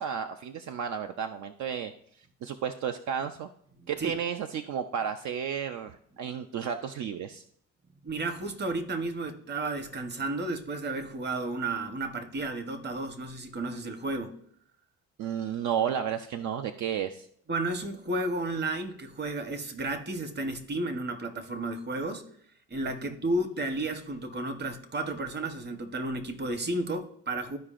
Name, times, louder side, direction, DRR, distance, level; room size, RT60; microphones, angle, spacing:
voice 1, 0.0-1.9 2.4-3.5 3.9-7.4 15.2-17.3, right 8 dB, 70° right, 7 dB, 0.5 m, -32 dB
voice 2, 3.8-4.1 8.0-14.4 17.5-22.2 22.7-27.6, right 2 dB, 35° right, 8 dB, 1.0 m, -32 dB
13.0 x 4.8 x 2.5 m, 0.66 s
cardioid pair, 90°, 30 cm